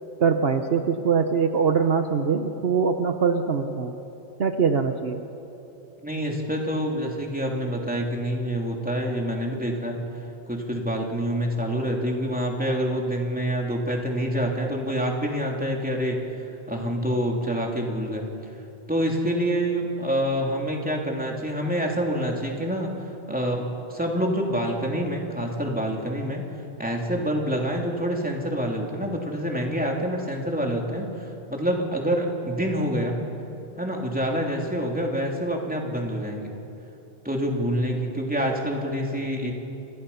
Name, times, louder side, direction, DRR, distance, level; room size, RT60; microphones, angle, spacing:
voice 1, 0.2-4.0 4.4-5.2, right 6 dB, 65° right, 7 dB, 1.2 m, -23 dB
voice 2, 6.0-10.0 10.5-16.2 16.7-18.2 18.9-26.4 26.8-33.1 33.8-36.5 37.2-39.5, equal, 10° right, -1 dB, 3.3 m, -27 dB
30.0 x 27.0 x 5.7 m, 2.9 s
omnidirectional pair, 1.1 m